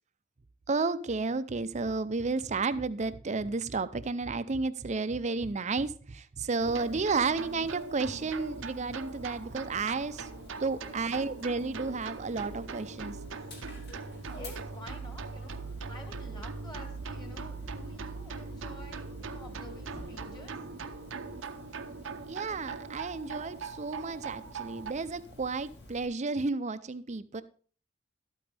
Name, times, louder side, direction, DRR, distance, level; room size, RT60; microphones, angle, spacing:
voice 1, 0.7-10.3 10.6-13.2 22.3-27.4, right 4 dB, 35° right, 13 dB, 0.5 m, -32 dB
Dog, 6.6-26.1, left 1 dB, 60° left, 2.5 m, -50 dB
sound 1, 6.6-24.9, right 4 dB, 85° right, 0.7 m, -41 dB
voice 2, 13.3-13.7 14.2-15.5 15.9-20.6, left 1 dB, 20° left, 3 dB, 2.1 m, -50 dB
12.5 x 8.8 x 3.4 m, 0.41 s
head